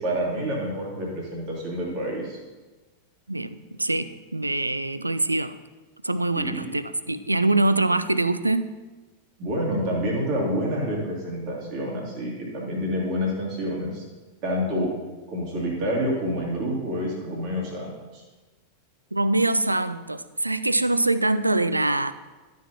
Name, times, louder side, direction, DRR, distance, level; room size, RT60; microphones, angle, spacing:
voice 1, 0.0-2.4 6.4-6.7 9.4-14.0 14.4-15.0 15.3-18.2, equal, 40° right, -3 dB, 2.4 m, -28 dB
voice 2, 3.3-5.5 6.0-8.7 19.1-22.1, right 2 dB, 85° right, 13 dB, 0.3 m, -24 dB
12.5 x 6.3 x 2.9 m, 1.3 s
figure-of-eight pair, 90°, 0 cm